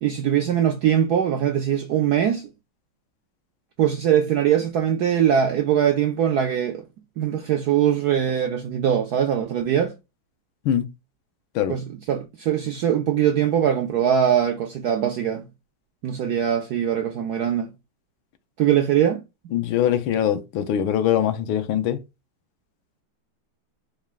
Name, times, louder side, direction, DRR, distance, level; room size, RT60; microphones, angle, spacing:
voice 1, 0.0-2.5 3.8-6.8 7.2-9.9 11.7-15.4 16.0-17.7 18.6-19.2, right 9 dB, 75° right, 0.9 m, -22 dB
voice 2, 19.5-22.0, left 10 dB, 75° left, 1.5 m, -22 dB
5.2 x 2.4 x 3.5 m
omnidirectional pair, 2.3 m